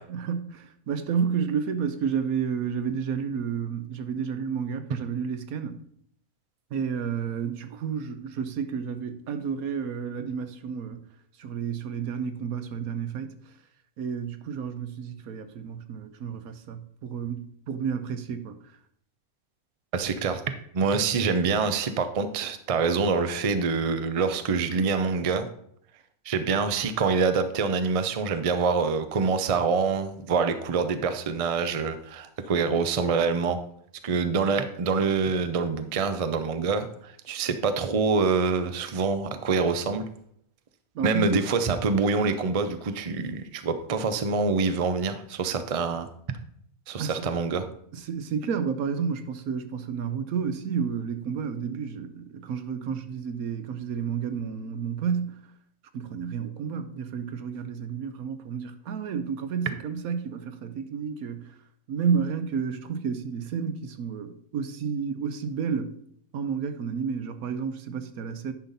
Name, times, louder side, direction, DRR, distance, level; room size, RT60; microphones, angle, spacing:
voice 1, 0.0-5.8 6.7-11.0 11.4-13.4 14.0-18.6 40.9-41.4 47.0-47.3 47.9-55.4 55.9-61.5 61.9-65.9 66.3-68.5, right 6 dB, 80° right, 1.2 m, -31 dB
voice 2, 19.9-25.5 26.2-33.6 34.0-40.0 41.0-46.1 46.9-47.7, right 5 dB, 40° right, 0.5 m, -26 dB
10.0 x 5.6 x 4.0 m
omnidirectional pair, 1.5 m